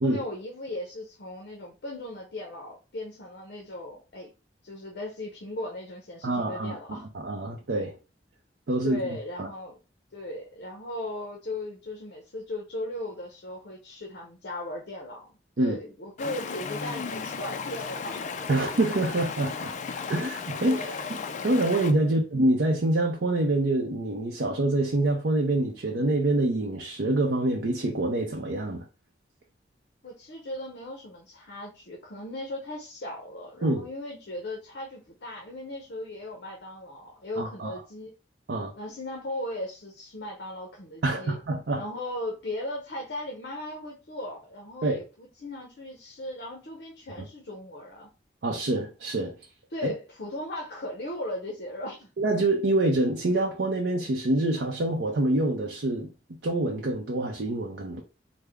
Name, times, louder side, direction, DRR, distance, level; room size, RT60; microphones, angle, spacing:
voice 1, 0.0-4.3 4.6-7.1 8.8-9.8 10.1-18.3 20.7-21.1 22.0-22.2 30.0-38.1 38.8-41.4 41.7-48.1 49.7-52.1, left 1 dB, 65° left, 0.7 m, -37 dB
voice 2, 6.2-7.9 8.7-9.5 15.6-15.8 18.5-19.7 20.1-21.2 21.4-28.9 33.6-33.8 37.4-37.8 38.5-38.7 41.0-41.8 44.8-45.0 48.4-49.4 52.2-56.1 56.4-58.0, right 2 dB, 75° right, 0.5 m, -26 dB
Stream, 16.2-21.9, left 5 dB, 45° left, 0.3 m, -35 dB
3.3 x 2.0 x 3.4 m
head